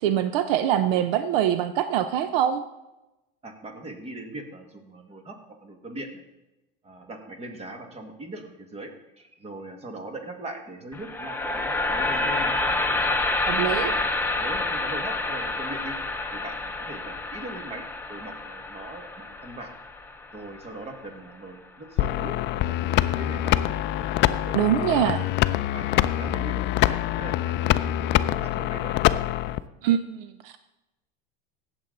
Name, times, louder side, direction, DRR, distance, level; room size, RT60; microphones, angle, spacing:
voice 1, 0.0-2.6 13.4-13.9 24.5-25.2 29.8-30.6, right 10 dB, 70° right, 11 dB, 0.7 m, -24 dB
voice 2, 3.4-6.2 6.8-12.6 13.7-14.1 14.4-16.0 16.3-17.8 18.1-19.7 20.3-23.6 24.4-24.9 25.7-28.9, right 1 dB, 20° right, 5 dB, 2.0 m, -40 dB
sound 1, 10.9-21.0, left 2 dB, 5° left, 1.0 m, -28 dB
sound 2, 22.0-29.6, left 14 dB, 40° left, 0.5 m, -24 dB
17.0 x 7.1 x 3.9 m, 0.98 s
supercardioid pair, 115°, 29 cm